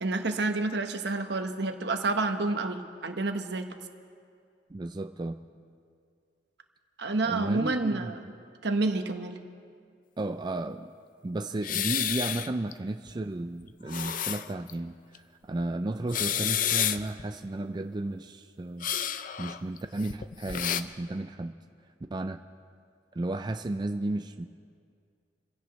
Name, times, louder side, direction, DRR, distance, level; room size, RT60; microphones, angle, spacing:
voice 1, 0.0-3.6 7.0-8.2 8.6-9.4, right 3 dB, 70° right, 6 dB, 1.2 m, -29 dB
voice 2, 4.7-5.4 7.3-8.1 10.2-10.9 11.2-18.9 19.4-21.5 22.1-22.4 23.1-24.5, right 2 dB, 25° right, 7 dB, 0.4 m, -33 dB
sound 1, 11.6-12.7 13.1-13.2 13.7-14.7 15.1-15.2 16.0-17.2 18.8-20.8, left 9 dB, 50° left, 0.5 m, -30 dB
28.0 x 16.5 x 3.2 m, 2.3 s
head